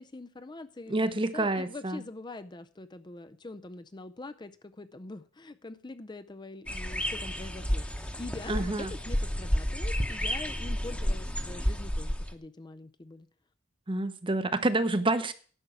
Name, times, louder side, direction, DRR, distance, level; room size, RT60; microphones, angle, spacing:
voice 1, 0.0-13.3, left 2 dB, 25° left, 0.5 m, -44 dB
voice 2, 0.9-2.0 8.5-8.9 13.9-15.3, right 2 dB, 25° right, 0.8 m, -28 dB
sound 1, 6.7-12.3, equal, 5° left, 1.0 m, -31 dB
11.0 x 6.1 x 7.9 m
head